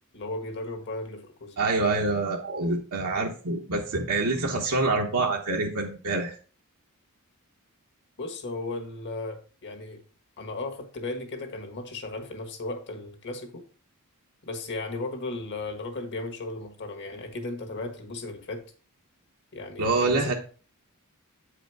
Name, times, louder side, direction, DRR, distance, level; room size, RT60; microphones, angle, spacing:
voice 1, 0.1-1.6 8.2-10.0 10.4-13.6 14.5-18.6 19.5-20.3, left 2 dB, 50° left, 5 dB, 1.5 m, -35 dB
voice 2, 1.6-6.3 19.8-20.3, right 3 dB, 80° right, -1 dB, 1.1 m, -26 dB
8.4 x 5.0 x 4.7 m, 0.39 s
head